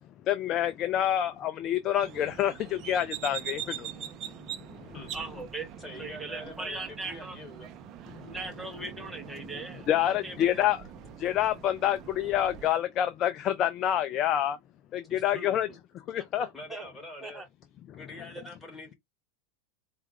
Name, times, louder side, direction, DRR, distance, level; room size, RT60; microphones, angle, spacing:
voice 1, 0.3-3.6 9.9-10.8 11.2-14.6 14.9-15.7 16.1-16.5, left 11 dB, 40° left, 0.5 m, -27 dB
sound 1, 2.0-12.7, right 10 dB, 40° right, 0.6 m, -43 dB
voice 2, 5.1-5.7 6.0-7.4 8.3-10.6 16.4-16.9 17.2-17.5 18.3-18.4, right 3 dB, 10° right, 0.8 m, -39 dB
voice 3, 5.8-7.7 15.1-15.8 16.5-17.4 18.0-18.9, left 1 dB, 10° left, 1.9 m, -44 dB
4.5 x 2.4 x 3.2 m
hypercardioid pair, 110°, 0 cm